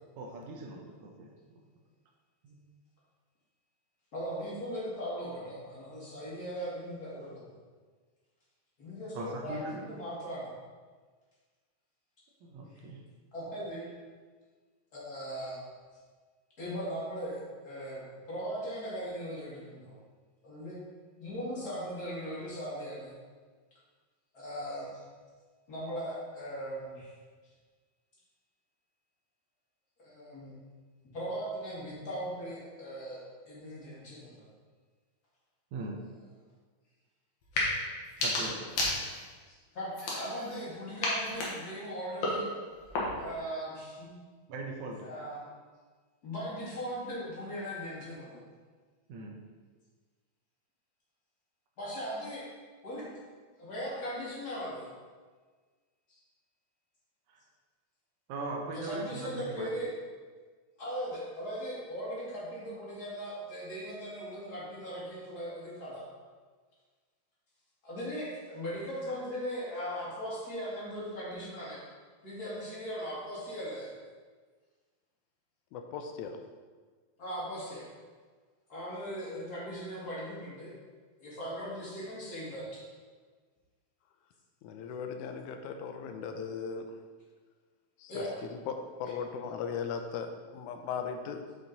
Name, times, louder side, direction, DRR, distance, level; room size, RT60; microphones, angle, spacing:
voice 1, 0.2-1.3 2.4-2.6 9.1-9.8 12.4-13.0 35.7-36.1 38.2-38.7 44.5-45.1 49.1-49.5 57.3-57.4 58.3-59.7, right 2 dB, 75° right, 1 dB, 2.1 m, -40 dB
voice 2, 4.1-7.5 8.8-10.5 13.3-13.9 14.9-15.6 16.6-18.0 18.3-20.0 20.4-20.8 21.2-23.2 24.3-24.9 25.7-27.1 30.0-30.5 31.1-34.5 39.5-42.5 43.1-44.1 45.0-45.5 46.2-48.4 51.8-52.5 52.8-53.0 53.6-54.9 56.1-56.2 58.7-59.9 60.8-66.0 67.8-71.8 72.2-73.9 77.2-77.9 78.7-80.7 81.2-82.8 88.1-88.3, equal, 35° left, -7 dB, 2.2 m, -39 dB
sound 1, 37.4-37.7 38.0-39.4 39.9-40.6 41.0-43.4, left 2 dB, 60° left, 2.3 m, -33 dB
voice 3, 75.7-76.4 84.6-86.9 88.0-91.4, left 6 dB, 85° left, 6 dB, 2.0 m, -38 dB
7.5 x 5.2 x 4.0 m, 1.5 s
omnidirectional pair, 3.5 m